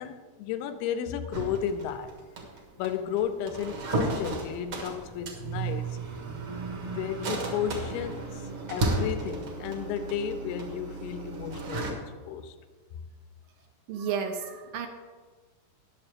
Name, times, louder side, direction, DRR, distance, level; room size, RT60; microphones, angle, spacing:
voice 1, 0.0-2.1 2.8-6.0 6.8-12.6, left 9 dB, 85° left, 9 dB, 2.7 m, -33 dB
sound 1, 1.3-11.9, right 3 dB, 55° right, 1.6 m, -34 dB
voice 2, 13.9-14.9, right 7 dB, 75° right, 5 dB, 2.3 m, -32 dB
20.0 x 6.9 x 3.4 m, 1.4 s
omnidirectional pair, 4.5 m